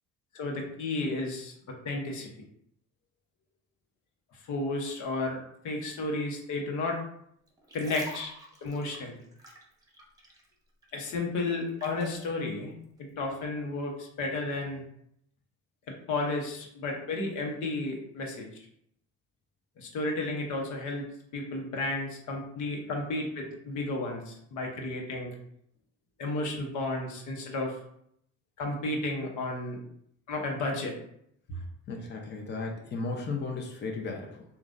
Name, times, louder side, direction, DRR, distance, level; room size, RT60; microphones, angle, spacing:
voice 1, 0.3-2.3 4.4-7.0 7.7-8.3 8.6-9.1 10.9-12.7 13.2-14.8 15.9-18.5 19.8-21.1 21.3-25.3 26.2-27.8 28.6-29.8 30.3-31.0, left 2 dB, 85° left, 1 dB, 1.1 m, -32 dB
sound 1, 7.5-10.5 10.8-12.2 12.8-13.0, right 1 dB, 10° right, 0.9 m, -46 dB
voice 2, 31.9-34.4, left 3 dB, 35° left, 1 dB, 0.8 m, -35 dB
6.7 x 2.5 x 2.6 m, 0.71 s
cardioid pair, 130°, 29 cm